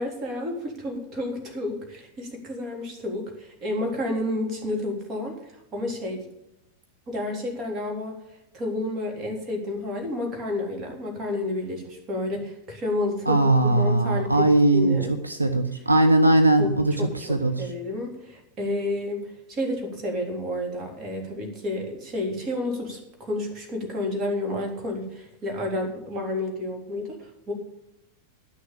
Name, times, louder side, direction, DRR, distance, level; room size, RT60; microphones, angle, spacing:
voice 1, 0.0-6.3 7.1-8.2 8.5-15.1 16.6-16.7 17.0-27.5, left 1 dB, 30° right, 1 dB, 3.5 m, -30 dB
voice 2, 13.3-15.0 15.3-17.6, right 2 dB, 85° right, 6 dB, 0.8 m, -20 dB
11.0 x 6.5 x 8.6 m, 0.83 s
figure-of-eight pair, 90°, 0 cm